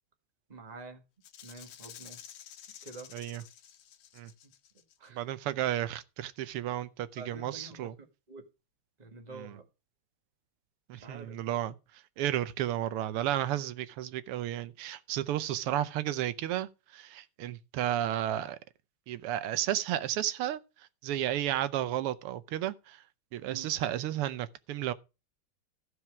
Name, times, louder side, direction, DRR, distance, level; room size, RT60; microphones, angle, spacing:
voice 1, 0.5-1.0 1.4-2.2 2.8-3.1 5.0-5.2 7.2-7.9 8.3-8.4 9.0-9.6 10.9-11.4 23.5-23.7, right 3 dB, 20° right, 1.4 m, -47 dB
Rattle (instrument), 1.2-5.1, left 10 dB, 85° left, 1.8 m, -51 dB
voice 2, 3.1-3.4 4.1-4.3 5.1-7.9 9.3-9.6 10.9-18.6 19.1-23.0 23.3-24.9, right 12 dB, 85° right, 1.7 m, -33 dB
14.5 x 4.8 x 6.0 m
omnidirectional pair, 2.4 m